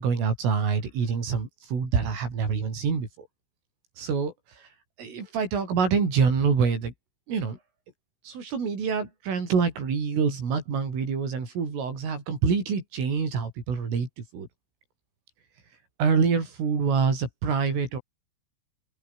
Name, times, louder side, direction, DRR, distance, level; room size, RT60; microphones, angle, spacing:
voice 1, 0.0-3.1 4.0-4.3 5.0-6.9 7.3-7.6 8.3-14.5 16.0-18.0, right 5 dB, 80° right, 9.1 m, -26 dB
open air
omnidirectional pair, 5.7 m